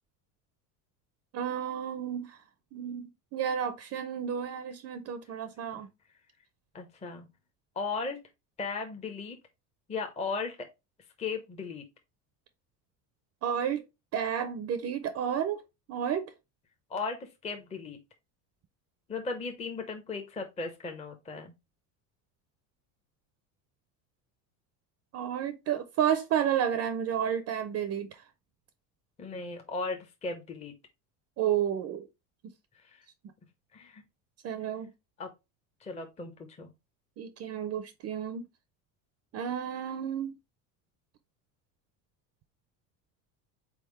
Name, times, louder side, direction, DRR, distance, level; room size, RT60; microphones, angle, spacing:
voice 1, 1.3-2.4 2.7-5.9 13.4-13.8 14.1-15.6 15.9-16.3 25.1-28.2 31.4-32.1 34.4-34.9 37.2-38.4 39.3-40.3, right 9 dB, 40° right, 0.5 m, -31 dB
voice 2, 6.7-7.3 7.8-8.2 8.6-9.4 9.9-10.7 11.2-11.8 16.9-18.0 19.1-21.5 29.2-30.7 32.8-33.0 33.7-34.0 35.2-35.3 35.8-36.7, left 4 dB, 15° left, 0.6 m, -36 dB
4.1 x 3.5 x 3.0 m
supercardioid pair, 115°, 40 cm